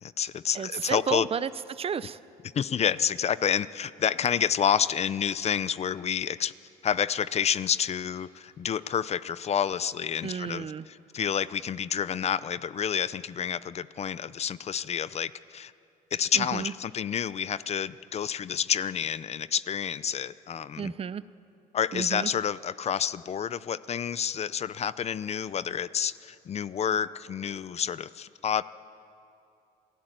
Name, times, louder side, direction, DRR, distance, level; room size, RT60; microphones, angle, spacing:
voice 1, 0.0-1.3 2.5-6.5 6.8-15.7 16.1-20.9 21.7-28.6, left 8 dB, 40° left, 16 dB, 0.6 m, -29 dB
voice 2, 0.5-2.2 10.2-10.9 16.3-16.7 20.8-21.2 21.9-22.3, right 7 dB, 35° right, 16 dB, 0.6 m, -32 dB
28.0 x 16.5 x 9.2 m, 2.7 s
cardioid pair, 110°, 17 cm